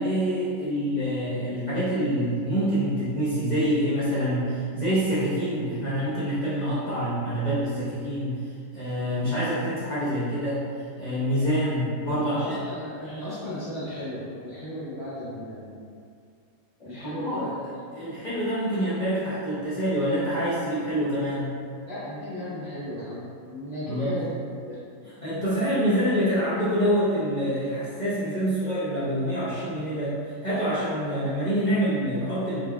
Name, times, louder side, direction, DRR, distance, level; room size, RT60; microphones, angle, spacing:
voice 1, 0.0-8.3 8.7-10.6 11.0-12.6 17.0-17.5 17.9-21.5 23.9-24.2 25.0-32.7, equal, 70° left, -11 dB, 0.4 m, -26 dB
voice 2, 12.2-15.9 16.8-17.7 21.9-24.4 24.6-24.8, left 1 dB, 25° left, -12 dB, 1.1 m, -35 dB
3.8 x 3.5 x 2.3 m, 2.3 s
omnidirectional pair, 1.9 m